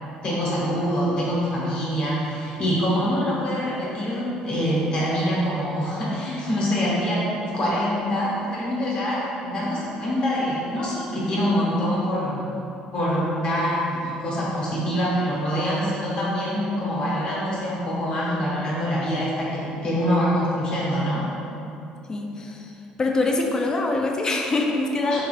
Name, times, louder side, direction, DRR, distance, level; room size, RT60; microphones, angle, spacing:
voice 1, 0.2-12.4 12.9-21.3 25.1-25.2, equal, 50° left, -6 dB, 1.0 m, -25 dB
voice 2, 22.1-22.7 23.0-25.2, left 2 dB, 25° left, 1 dB, 0.4 m, -24 dB
3.5 x 2.4 x 3.1 m, 2.8 s
cardioid pair, 105°, 2 cm